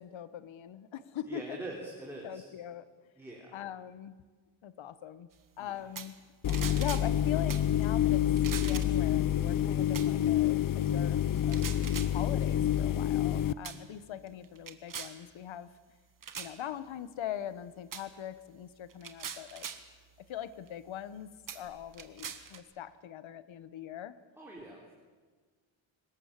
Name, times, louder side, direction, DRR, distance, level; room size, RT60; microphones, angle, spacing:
voice 1, 0.0-1.6 2.2-2.9 3.5-4.2 4.6-5.3 5.6-6.2 6.7-8.3 8.6-11.7 12.1-15.7 16.3-19.7 20.2-24.2, left 10 dB, 75° left, 15 dB, 1.2 m, -42 dB
voice 2, 1.3-2.5 3.2-3.6 5.6-5.8 24.4-24.9, right 1 dB, 5° right, -3 dB, 3.5 m, -43 dB
sound 1, 6.0-6.2 6.5-7.1 7.5-7.7 8.4-9.0 9.9-10.1 11.4-12.1 13.0-13.3 13.6-13.8 14.3-15.2 16.2-16.6 17.9-18.1 18.9-19.9 20.7-20.8 21.5-22.6, right 7 dB, 45° right, 1.7 m, -41 dB
Refrigerator Fridge, 6.4-13.5, left 10 dB, 45° left, 0.6 m, -28 dB
23.5 x 20.0 x 7.4 m, 1.4 s
wide cardioid pair, 140°, 47 cm